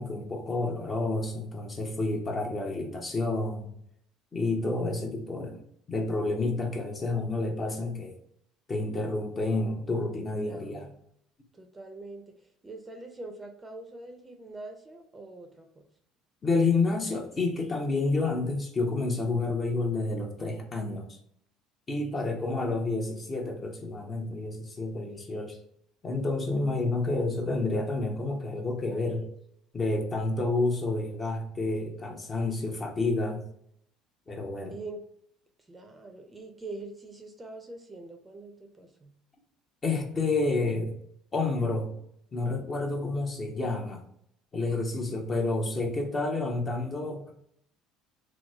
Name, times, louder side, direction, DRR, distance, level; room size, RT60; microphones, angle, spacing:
voice 1, 0.0-3.7 4.3-5.6 5.9-8.1 8.7-10.9 16.4-21.2 21.9-25.6 26.0-29.3 29.7-33.4 34.3-34.8 39.8-40.9 41.3-41.9 42.3-44.1 44.5-47.3, left 3 dB, 30° left, 2 dB, 0.8 m, -29 dB
voice 2, 10.5-10.9 11.5-15.8 22.2-22.8 26.4-26.9 34.7-35.0 35.7-39.1, right 2 dB, 20° right, 4 dB, 0.5 m, -44 dB
3.0 x 2.0 x 3.4 m, 0.71 s
hypercardioid pair, 75°, 0 cm